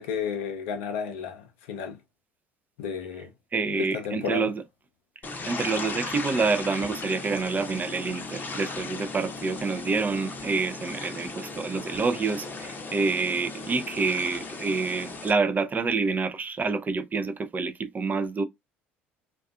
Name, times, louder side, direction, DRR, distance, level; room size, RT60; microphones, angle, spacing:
voice 1, 0.0-2.0 2.8-3.3 3.7-4.5, left 6 dB, 75° left, 0.5 m, -32 dB
voice 2, 3.5-4.6 5.5-18.4, right 4 dB, 30° right, 0.5 m, -27 dB
sound 1, 5.2-15.3, left 3 dB, 30° left, 0.7 m, -37 dB
2.4 x 2.3 x 2.3 m
figure-of-eight pair, 60°, 6 cm